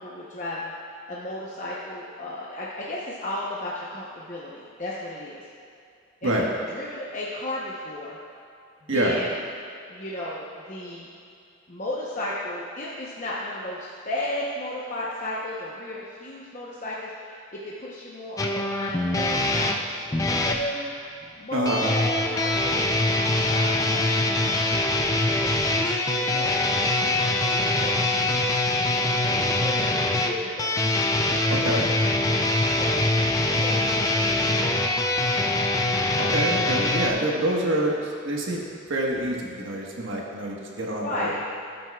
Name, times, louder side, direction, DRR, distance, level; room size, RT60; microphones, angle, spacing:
voice 1, 0.0-5.4 6.2-8.2 8.8-9.3 9.9-11.1 11.7-20.9 21.4-23.0 23.5-25.9 26.3-28.2 29.2-33.0 33.5-34.9 41.0-41.4, left 1 dB, 40° left, -6 dB, 0.9 m, -35 dB
voice 2, 8.9-9.2 21.5-21.8 31.5-31.8 36.1-38.6 38.9-41.3, right 1 dB, 70° right, -2 dB, 1.4 m, -26 dB
sound 1, 18.4-20.6 21.6-37.1, left 2 dB, 15° left, 0.4 m, -23 dB
14.0 x 7.6 x 2.3 m, 2.5 s
head